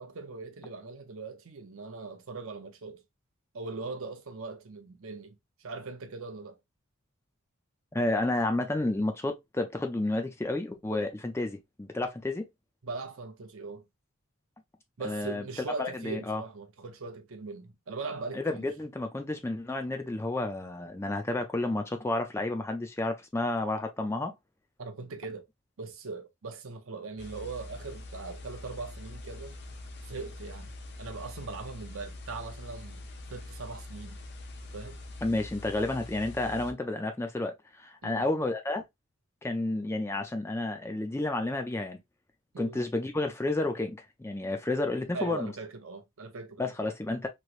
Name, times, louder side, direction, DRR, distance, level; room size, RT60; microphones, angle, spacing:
voice 1, 0.0-3.0 3.5-6.6 12.8-13.8 15.0-18.7 24.8-25.5 25.8-29.6 30.0-30.7 31.0-34.2 34.7-35.0 38.0-38.2 42.5-42.8 45.1-46.7, right 3 dB, 65° right, 0.6 m, -40 dB
voice 2, 7.9-12.5 15.0-15.4 15.8-16.4 18.3-24.3 35.2-38.8 39.4-42.0 42.6-45.5 46.6-47.3, left 2 dB, 10° left, 0.4 m, -31 dB
sound 1, 27.2-36.7, left 2 dB, 50° left, 0.6 m, -44 dB
3.1 x 2.9 x 2.4 m
head